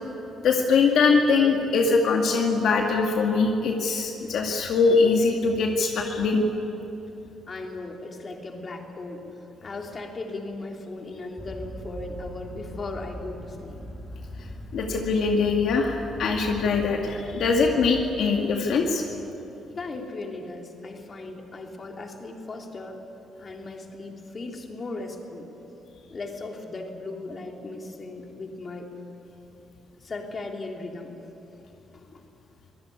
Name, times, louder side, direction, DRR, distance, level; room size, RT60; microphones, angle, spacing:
voice 1, 0.4-6.4 14.7-19.0, left 4 dB, 70° left, 1 dB, 2.1 m, -22 dB
voice 2, 7.5-9.2 9.6-13.8 19.7-23.0 23.4-25.5 26.1-28.9 30.0-31.1 31.9-32.2, left 2 dB, 40° left, 1 dB, 3.4 m, -37 dB
sound 1, 11.4-18.0, equal, 10° left, 3.7 m, -40 dB
24.5 x 17.5 x 9.6 m, 3.0 s
cardioid pair, 90°, 0 cm